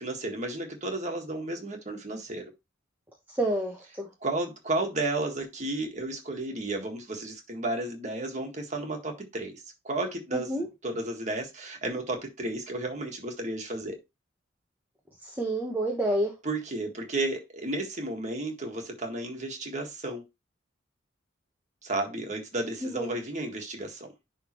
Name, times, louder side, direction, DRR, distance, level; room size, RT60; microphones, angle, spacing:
voice 1, 0.0-2.4 4.2-14.0 16.4-20.2 21.8-24.1, right 2 dB, 35° right, 1.7 m, -33 dB
voice 2, 3.4-4.1 10.3-10.7 15.2-16.3 22.8-23.2, right 1 dB, 10° right, 1.1 m, -29 dB
10.5 x 3.6 x 3.0 m
head